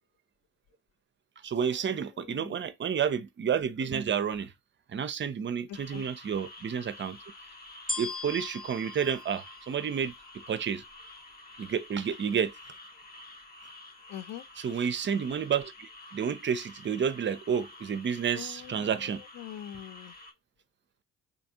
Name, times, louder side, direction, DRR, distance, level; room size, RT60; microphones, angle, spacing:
voice 1, 1.4-4.5 4.9-7.2 8.0-10.1 10.5-10.8 11.6-12.5 14.6-19.2, right 7 dB, 30° right, 0.5 m, -30 dB
voice 2, 2.2-2.5 5.9-6.0 14.1-14.4 18.4-19.0 19.4-20.1, left 12 dB, 50° left, 0.5 m, -43 dB
sound 1, 5.7-20.3, left 2 dB, 25° left, 0.8 m, -50 dB
sound 2, 7.9-10.3 10.9-11.0, left 2 dB, ahead, 1.0 m, -38 dB
3.4 x 2.7 x 2.7 m
hypercardioid pair, 45°, 36 cm